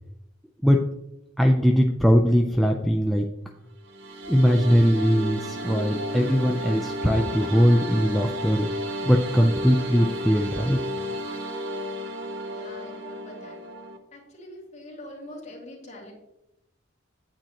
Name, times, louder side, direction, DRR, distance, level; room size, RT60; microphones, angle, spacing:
voice 1, 1.4-3.3 4.3-8.7 9.0-10.8, equal, ahead, 1 dB, 0.4 m, -20 dB
sound 1, 3.8-14.0, equal, 70° right, 1.0 m, -33 dB
voice 2, 12.5-13.6 14.1-16.1, left 1 dB, 35° left, -3 dB, 2.7 m, -43 dB
8.9 x 8.8 x 2.9 m, 0.86 s
head